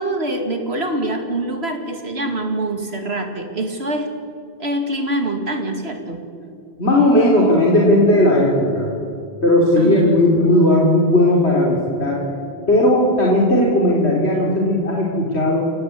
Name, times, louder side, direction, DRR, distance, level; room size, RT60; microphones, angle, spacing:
voice 1, 0.0-4.1 4.6-6.2 9.8-10.2, right 1 dB, 75° right, 5 dB, 2.8 m, -24 dB
voice 2, 6.8-8.9 9.4-12.2 12.7-15.7, left 1 dB, 80° left, -3 dB, 3.7 m, -16 dB
29.0 x 18.0 x 8.6 m, 2.4 s
omnidirectional pair, 1.1 m